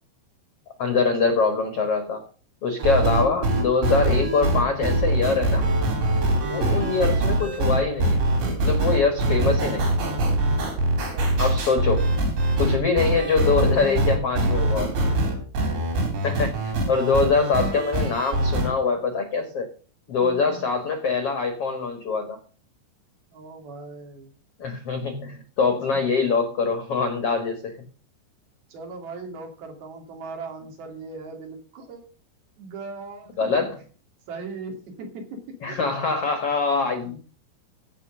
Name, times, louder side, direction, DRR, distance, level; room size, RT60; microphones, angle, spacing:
voice 1, 0.8-2.2 2.6-5.7 6.5-8.2 8.6-9.9 11.4-12.1 12.6-14.9 16.2-19.7 20.1-22.4 24.6-27.7 33.4-33.8 35.6-37.2, left 4 dB, 60° left, 6 dB, 1.6 m, -24 dB
sound 1, 2.8-18.7, right 1 dB, 80° right, 5.9 m, -23 dB
voice 2, 10.7-11.3 16.0-16.1 20.2-20.7 23.3-24.3 25.9-26.0 28.7-32.0 32.6-33.6 34.3-35.4 35.7-35.9 37.0-37.2, right 3 dB, 60° right, 3 dB, 4.4 m, -39 dB
15.5 x 5.6 x 6.2 m, 0.39 s
omnidirectional pair, 5.0 m